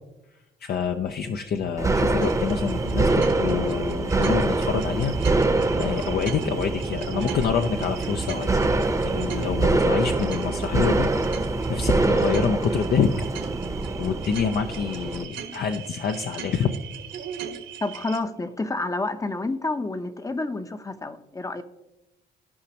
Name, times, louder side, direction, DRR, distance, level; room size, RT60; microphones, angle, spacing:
voice 1, 0.6-5.4 5.8-8.6 9.0-13.1 14.0-16.8, left 7 dB, 55° left, 5 dB, 0.6 m, -27 dB
sound 1, 1.8-15.2, right 2 dB, 15° right, 0.8 m, -25 dB
sound 2, 2.2-18.2, right 8 dB, 70° right, 1.3 m, -40 dB
voice 2, 17.8-21.6, left 2 dB, 15° left, 10 dB, 0.7 m, -29 dB
15.0 x 5.1 x 2.9 m, 0.97 s
cardioid pair, 90°, 20 cm